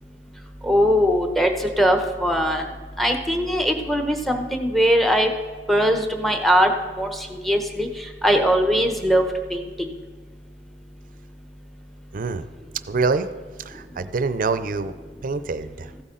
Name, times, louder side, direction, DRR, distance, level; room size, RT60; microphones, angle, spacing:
voice 1, 0.6-2.6 3.0-5.3 5.7-6.7 7.0-9.2 9.5-9.9, equal, ahead, 5 dB, 0.9 m, -20 dB
voice 2, 12.1-12.5 12.9-13.3 13.6-14.9 15.2-15.9, right 4 dB, 50° right, 12 dB, 0.5 m, -25 dB
15.0 x 8.2 x 3.8 m, 1.5 s
head